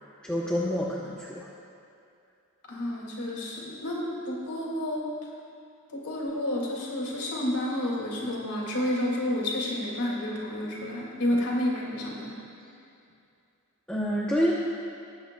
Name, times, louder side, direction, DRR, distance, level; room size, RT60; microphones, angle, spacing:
voice 1, 0.2-1.5 13.9-14.5, equal, 5° left, -6 dB, 0.7 m, -27 dB
voice 2, 2.7-5.0 5.9-12.4, left 1 dB, 85° left, -3 dB, 2.2 m, -30 dB
19.5 x 8.0 x 2.2 m, 2.5 s
head